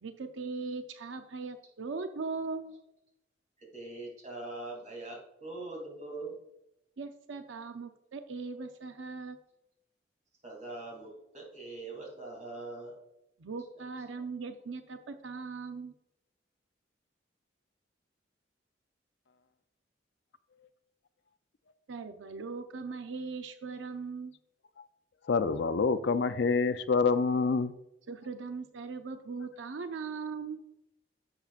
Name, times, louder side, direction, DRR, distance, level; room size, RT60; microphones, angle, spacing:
voice 1, 0.0-2.8 7.0-9.4 13.4-15.9 21.9-24.3 28.1-30.6, right 4 dB, 85° right, 0.6 m, -39 dB
voice 2, 3.6-6.4 10.4-13.0 13.8-13.9, right 2 dB, 40° right, 3.0 m, -42 dB
voice 3, 25.3-27.7, left 4 dB, 65° left, 0.5 m, -26 dB
11.0 x 7.2 x 2.4 m
head